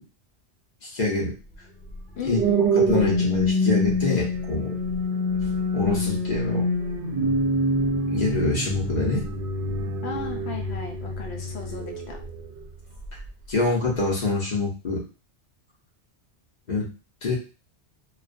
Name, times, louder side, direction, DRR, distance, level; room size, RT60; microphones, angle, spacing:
voice 1, 0.8-1.3 2.3-4.8 5.7-6.7 8.1-9.3 13.5-15.0 16.7-16.9 17.2-17.4, left 3 dB, 45° left, -3 dB, 0.7 m, -25 dB
sound 1, 1.9-12.5 13.0-13.3, equal, 60° right, 0.6 m, -26 dB
voice 2, 2.2-2.7 10.0-12.2, left 5 dB, 75° left, 2 dB, 0.8 m, -35 dB
2.4 x 2.1 x 2.4 m, 0.33 s
omnidirectional pair, 1.2 m